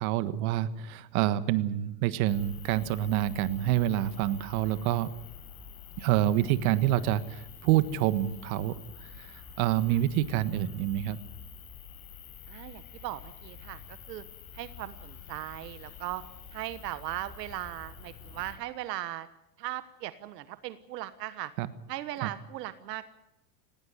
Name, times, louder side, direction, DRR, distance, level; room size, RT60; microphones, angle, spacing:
voice 1, 0.0-5.1 6.0-11.2 21.6-21.7 22.2-22.3, right 13 dB, 60° right, 13 dB, 1.5 m, -27 dB
sound 1, 2.3-18.6, left 7 dB, 45° left, 7.8 m, -48 dB
voice 2, 12.5-14.2 14.5-16.2 16.5-19.3 19.6-21.5 21.9-23.1, right 14 dB, 80° right, 13 dB, 1.3 m, -38 dB
19.0 x 18.0 x 9.5 m, 0.89 s
supercardioid pair, 125°, 48 cm